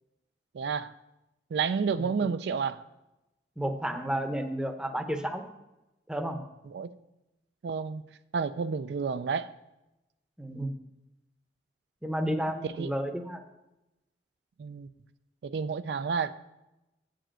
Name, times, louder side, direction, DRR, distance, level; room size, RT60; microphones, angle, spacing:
voice 1, 0.5-0.9 1.5-2.8 6.7-6.9 7.6-8.0 8.3-9.5 12.8-12.9 14.6-14.9 15.4-16.3, right 5 dB, 65° right, 13 dB, 0.3 m, -30 dB
voice 2, 2.0-2.3 3.6-5.4 6.1-6.4 10.4-10.7 12.0-13.4, right 1 dB, 5° right, 7 dB, 0.7 m, -32 dB
7.9 x 5.1 x 7.4 m, 0.95 s
head